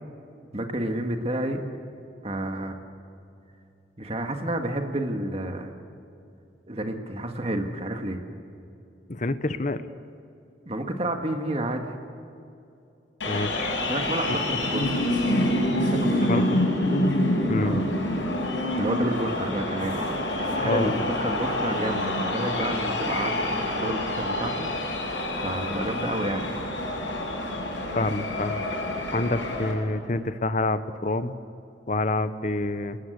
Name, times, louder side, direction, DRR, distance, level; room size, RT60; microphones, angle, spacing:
voice 1, 0.5-1.6 2.2-2.7 4.0-5.7 6.7-8.2 10.7-12.0 13.8-15.0 15.8-16.4 17.6-17.9 18.8-25.0 25.4-26.5, right 1 dB, 35° right, 5 dB, 1.9 m, -30 dB
voice 2, 9.1-9.8 13.3-13.8 14.5-14.6 16.3-16.6 17.0-17.1 17.5-17.8 20.5-20.9 27.9-28.6 29.1-31.3 31.9-33.0, left 2 dB, 40° left, 12 dB, 1.0 m, -27 dB
sound 1, 13.2-29.7, left 1 dB, 85° left, 6.7 m, -27 dB
29.0 x 20.0 x 8.2 m, 2.6 s
head